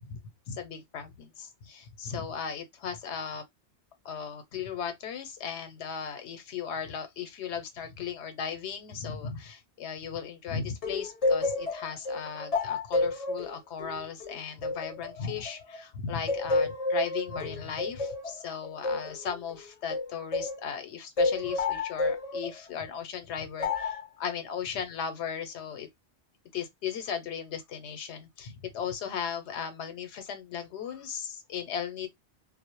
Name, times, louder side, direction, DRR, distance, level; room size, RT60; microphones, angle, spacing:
voice 1, 0.5-3.4 4.0-25.9 26.5-32.1, left 7 dB, 90° left, 0.9 m, -37 dB
sound 1, 10.8-15.8 16.3-20.6 21.2-22.6 23.6-24.1, left 3 dB, 40° left, 0.6 m, -30 dB
2.1 x 2.0 x 2.9 m
omnidirectional pair, 1.1 m